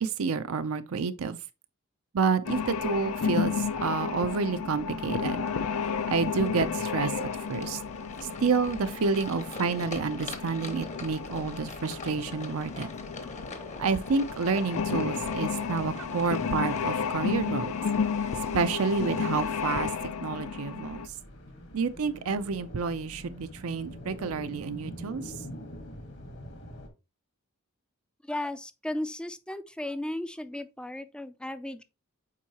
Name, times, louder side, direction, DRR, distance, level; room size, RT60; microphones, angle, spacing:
voice 1, 0.0-1.4 2.1-5.5 6.1-7.8 8.2-12.9 13.8-17.7 18.5-19.9 20.2-21.0 21.7-25.3, right 5 dB, 80° right, 0.5 m, -29 dB
sound 1, 2.4-21.1, left 6 dB, 85° left, 0.5 m, -32 dB
sound 2, 5.0-20.0, left 3 dB, 35° left, 0.9 m, -44 dB
sound 3, 10.6-26.9, equal, 55° left, 1.5 m, -46 dB
voice 2, 28.2-31.8, left 1 dB, 5° left, 0.4 m, -35 dB
7.4 x 4.6 x 2.9 m
head